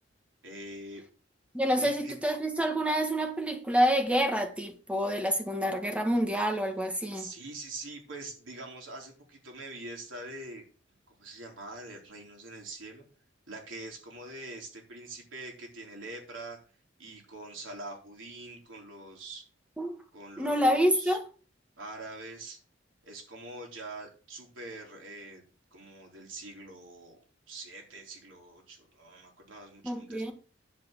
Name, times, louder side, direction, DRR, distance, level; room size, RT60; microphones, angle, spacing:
voice 1, 0.4-1.0 1.7-2.1 7.1-10.6 11.1-13.1 13.5-16.6 17.0-19.4 20.1-21.2 21.8-22.6 23.0-25.4 25.7-27.2 27.5-30.3, right 2 dB, 85° right, 3.6 m, -44 dB
voice 2, 1.5-7.3 19.8-20.0 20.4-21.2 29.8-30.3, equal, 5° right, 1.6 m, -27 dB
10.5 x 4.5 x 7.4 m
head